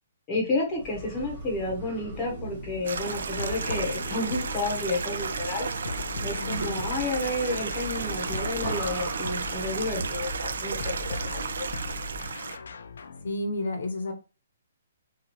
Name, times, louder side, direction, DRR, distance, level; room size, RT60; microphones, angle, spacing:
voice 1, 0.3-5.7 6.2-11.7, left 2 dB, 15° left, -1 dB, 0.7 m, -31 dB
sound 1, 0.7-12.4, right 1 dB, 35° right, 0.8 m, -38 dB
Stream, 2.8-12.6, right 5 dB, 70° right, 0.3 m, -34 dB
sound 2, 3.4-5.1 5.9-10.0 10.8-13.3, left 4 dB, 90° left, 0.3 m, -39 dB
voice 2, 6.4-6.8 13.2-14.1, left 2 dB, 70° left, 6 dB, 0.7 m, -31 dB
2.9 x 2.3 x 2.9 m, 0.32 s
hypercardioid pair, 175°, 0 cm